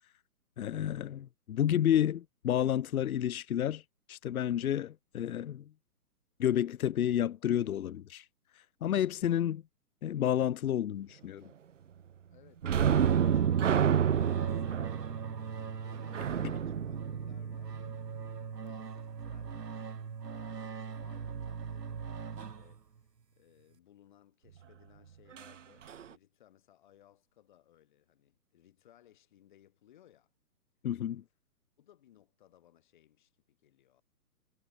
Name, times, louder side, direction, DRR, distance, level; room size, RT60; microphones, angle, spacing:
voice 1, 0.6-3.8 4.1-5.6 6.4-8.2 8.8-9.6 10.0-11.5 30.8-31.2, left 10 dB, 65° left, 0.6 m, -30 dB
voice 2, 12.3-18.3 18.6-20.0 20.2-30.3 31.8-34.0, left 12 dB, 30° left, 7.9 m, -63 dB
sound 1, 12.6-18.0 25.4-25.5 25.9-26.0, right 8 dB, 55° right, 0.5 m, -29 dB
sound 2, 12.8-23.1, right 6 dB, 85° right, 4.6 m, -41 dB
hypercardioid pair, 175°, 47 cm